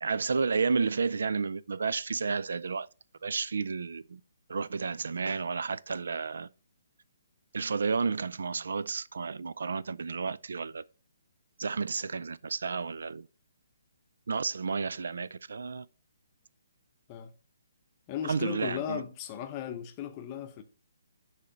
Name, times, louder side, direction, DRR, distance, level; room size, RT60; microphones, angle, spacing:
voice 1, 0.0-2.9 3.2-4.2 4.5-6.5 7.5-10.8 11.6-13.3 14.3-15.9 18.2-19.0, right 5 dB, 75° right, 0.3 m, -31 dB
voice 2, 18.1-20.6, left 9 dB, 25° left, 0.7 m, -36 dB
6.4 x 3.2 x 5.6 m
hypercardioid pair, 160°, 0 cm